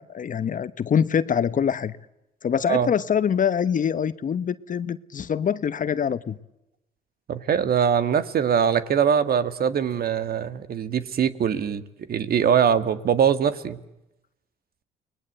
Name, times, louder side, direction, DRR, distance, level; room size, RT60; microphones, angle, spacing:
voice 1, 0.0-1.9 2.4-6.4, left 8 dB, 45° left, 1.1 m, -24 dB
voice 2, 7.3-11.8 12.1-13.8, right 8 dB, 60° right, 1.8 m, -22 dB
30.0 x 20.5 x 8.0 m
cardioid pair, 80°, 18 cm